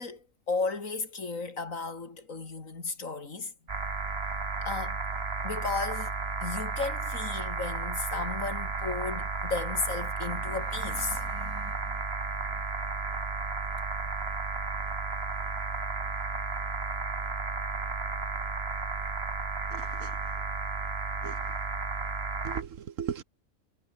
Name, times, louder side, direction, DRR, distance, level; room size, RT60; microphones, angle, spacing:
voice 1, 0.0-3.5 4.6-5.0 5.4-6.1 6.4-12.0 12.5-12.7, left 4 dB, 80° left, 3.4 m, -35 dB
sound 1, 3.7-22.6, right 4 dB, 50° right, 2.3 m, -33 dB
voice 2, 19.7-20.1 21.2-21.4 22.4-23.2, right 8 dB, 75° right, 1.5 m, -37 dB
omnidirectional pair, 1.4 m